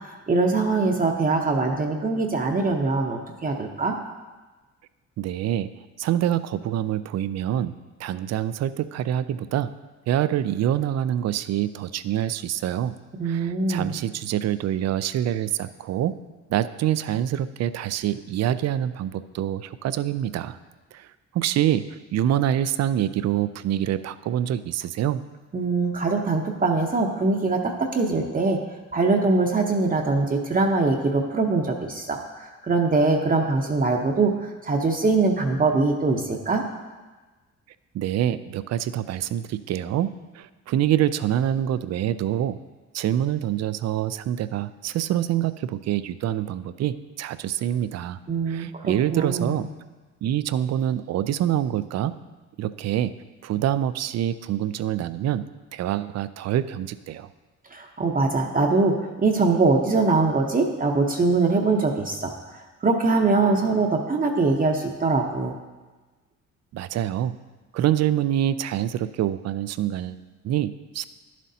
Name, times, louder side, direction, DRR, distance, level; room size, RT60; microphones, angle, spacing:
voice 1, 0.3-3.9 13.2-13.9 25.5-28.6 28.9-36.6 48.3-49.6 57.7-62.3 62.8-65.5, right 3 dB, 30° right, 2 dB, 0.8 m, -22 dB
voice 2, 5.2-5.7 6.0-7.7 8.0-9.7 10.1-12.9 13.2-16.1 16.5-20.6 20.9-21.1 21.3-25.2 37.9-40.1 40.3-42.6 42.9-48.2 48.5-49.7 50.2-52.1 52.6-53.2 53.4-55.4 55.7-57.3 66.7-67.4 67.7-71.0, right 11 dB, 60° right, 14 dB, 0.4 m, -26 dB
11.0 x 7.5 x 2.8 m, 1.3 s
cardioid pair, 90°, 30 cm